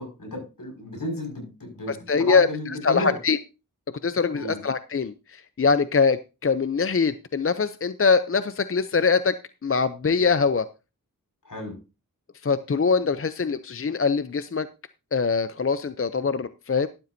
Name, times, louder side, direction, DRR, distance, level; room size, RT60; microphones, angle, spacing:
voice 1, 0.0-3.2 4.3-4.6 11.4-11.7, left 1 dB, 70° left, 2 dB, 5.8 m, -33 dB
voice 2, 1.9-3.4 4.0-9.4 9.6-10.7 12.4-14.7 15.1-16.9, left 5 dB, 40° left, 13 dB, 0.5 m, -23 dB
12.5 x 12.0 x 2.7 m, 0.29 s
wide cardioid pair, 65°, 33 cm